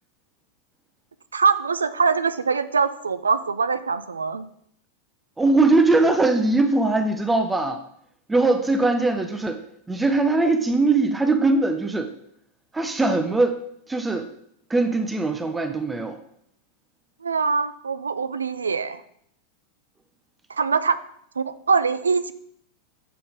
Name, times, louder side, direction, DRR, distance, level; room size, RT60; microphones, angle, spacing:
voice 1, 1.3-4.5 17.2-19.0 20.5-21.0 21.4-22.3, right 5 dB, 75° right, 14 dB, 0.4 m, -23 dB
voice 2, 5.4-7.8 8.3-9.6 9.9-12.1 12.7-13.6 13.9-14.3 14.7-16.2, right 2 dB, 10° right, 7 dB, 0.6 m, -21 dB
7.6 x 4.2 x 4.9 m, 0.70 s
figure-of-eight pair, 90°, 0 cm